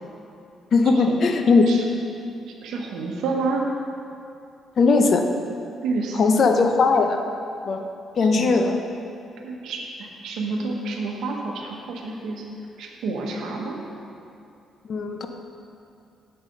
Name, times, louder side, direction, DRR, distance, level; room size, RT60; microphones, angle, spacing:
voice 1, 0.7-1.7 4.8-5.2 6.2-7.2 7.7-7.8 8.2-8.8 14.9-15.3, left 4 dB, 55° left, 5 dB, 0.7 m, -18 dB
voice 2, 2.6-3.7 5.8-6.2 8.2-8.6 9.4-12.5 12.8-13.8, right 3 dB, 80° right, 1 dB, 1.0 m, -29 dB
7.9 x 5.6 x 5.2 m, 2.6 s
cardioid pair, 90°, 0 cm